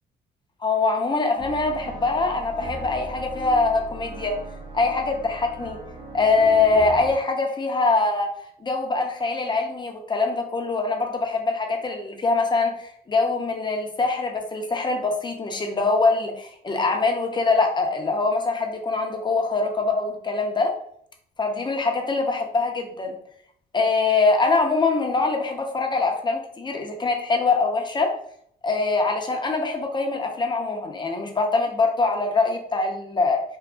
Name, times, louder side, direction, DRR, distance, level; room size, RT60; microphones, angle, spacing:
voice 1, 0.6-4.4 4.7-5.8 6.1-8.3 8.6-20.7 21.4-23.2 23.7-28.1 28.6-33.4, left 3 dB, 20° left, 2 dB, 0.5 m, -23 dB
sound 1, 1.4-7.1, right 2 dB, 20° right, 0.7 m, -38 dB
2.6 x 2.3 x 2.4 m, 0.65 s
cardioid pair, 90°, 20 cm